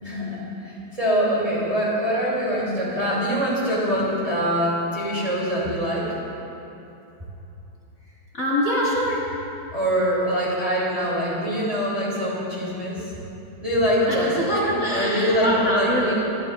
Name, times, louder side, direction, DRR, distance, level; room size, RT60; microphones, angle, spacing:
voice 1, 0.0-6.2 9.7-13.1 13.6-16.1, equal, 15° right, -7 dB, 3.0 m, -24 dB
voice 2, 8.3-9.2 14.1-16.1, equal, 40° left, -7 dB, 2.2 m, -24 dB
26.0 x 11.5 x 2.5 m, 2.9 s
omnidirectional pair, 2.4 m